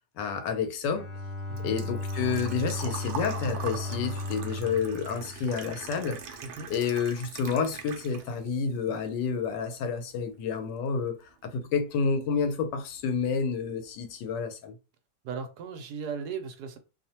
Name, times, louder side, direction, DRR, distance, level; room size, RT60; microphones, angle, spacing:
voice 1, 0.2-1.1 1.6-6.2 6.7-14.7, left 5 dB, 90° left, 1.3 m, -29 dB
Engine / Trickle dribble / Fill (with liquid), 0.6-8.5 8.9-9.9 10.2-10.3 12.2-12.3 12.4-12.8 13.1-13.2 13.5-13.6, right 6 dB, 90° right, 0.6 m, -42 dB
Bowed string instrument, 0.9-6.1, left 2 dB, 60° left, 0.9 m, -36 dB
voice 2, 15.2-16.8, right 6 dB, 75° right, 1.1 m, -37 dB
2.9 x 2.1 x 2.8 m
omnidirectional pair, 1.8 m